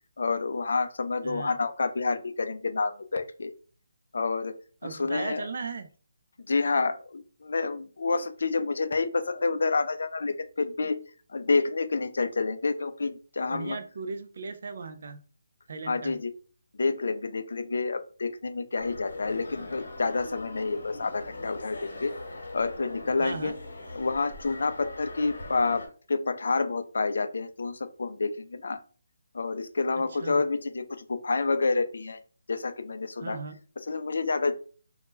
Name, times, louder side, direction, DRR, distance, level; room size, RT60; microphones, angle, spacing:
voice 1, 0.2-3.5 4.1-4.5 4.8-5.4 6.5-11.0 11.3-13.8 15.9-16.3 16.8-22.1 22.5-23.5 24.0-28.8 29.3-32.2 32.5-33.4 33.8-34.5, left 4 dB, 60° left, 10 dB, 0.3 m, -28 dB
voice 2, 1.2-1.5 4.8-5.9 13.5-15.2 15.7-16.2 23.2-23.5 30.1-30.4 33.2-33.6, right 4 dB, 45° right, 9 dB, 0.3 m, -37 dB
sound 1, 18.8-25.9, left 2 dB, 85° left, 0.9 m, -41 dB
2.1 x 2.1 x 3.1 m, 0.40 s
hypercardioid pair, 175°, 0 cm